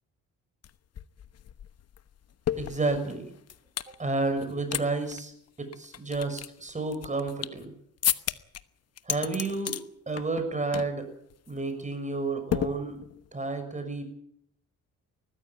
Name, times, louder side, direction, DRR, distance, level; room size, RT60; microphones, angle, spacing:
sound 1, 0.6-0.7 1.0-3.9 4.4-4.8 5.1-5.2 5.7-7.6 8.0-8.6 9.0-9.8 10.2-10.5 10.7-11.0 11.3-11.5 12.5-13.3, left 10 dB, 55° left, 1.1 m, -32 dB
voice 1, 2.5-3.3 4.0-5.3 5.6-7.7 9.0-9.7 10.1-11.1 11.5-13.0 13.3-14.0, right 3 dB, 25° right, 8 dB, 6.5 m, -31 dB
20.5 x 14.5 x 9.3 m, 0.71 s
cardioid pair, 90°, 30 cm